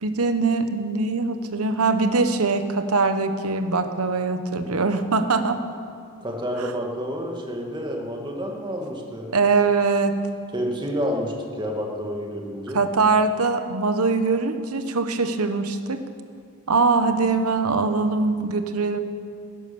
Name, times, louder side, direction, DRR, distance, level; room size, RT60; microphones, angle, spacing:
voice 1, 0.0-5.6 6.6-6.7 9.3-10.2 12.7-16.0 16.7-19.0, right 4 dB, 75° right, 9 dB, 1.1 m, -22 dB
voice 2, 6.2-9.3 10.5-12.8, equal, 20° right, 0 dB, 2.1 m, -29 dB
16.5 x 11.0 x 7.1 m, 2.3 s
head